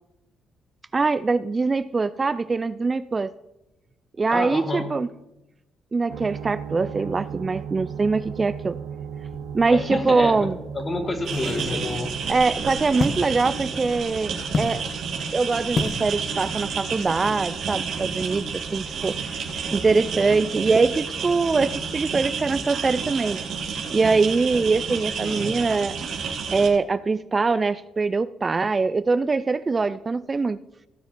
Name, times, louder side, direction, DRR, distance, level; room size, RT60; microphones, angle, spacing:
voice 1, 0.9-3.3 4.2-5.1 5.9-8.8 9.5-10.6 12.3-14.8 15.3-19.1 19.7-23.4 23.9-25.9 26.5-30.6, right 4 dB, 30° right, 14 dB, 0.4 m, -23 dB
voice 2, 4.3-4.9 9.7-11.9 25.2-25.6, left 2 dB, 30° left, 5 dB, 2.2 m, -29 dB
sound 1, 6.1-24.4, right 8 dB, 90° right, 1.3 m, -39 dB
sound 2, 9.3-9.9 10.3-10.4 11.2-13.2 14.5-14.8 15.7-16.0 16.3-16.7 16.9-17.1, left 3 dB, 50° left, 1.3 m, -29 dB
sound 3, 11.2-26.7, right 6 dB, 65° right, 2.1 m, -30 dB
16.0 x 7.1 x 4.4 m, 0.93 s
cardioid pair, 90°, 0 cm